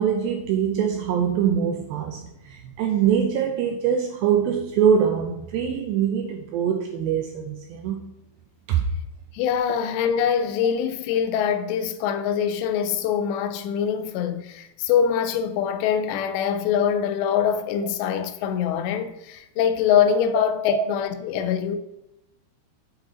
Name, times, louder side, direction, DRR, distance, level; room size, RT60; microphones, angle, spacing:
voice 1, 0.0-8.0 8.7-8.9, right 8 dB, 90° right, 2.0 m, -23 dB
voice 2, 9.3-21.8, left 8 dB, 90° left, 2.8 m, -24 dB
7.4 x 4.6 x 3.8 m
omnidirectional pair, 4.9 m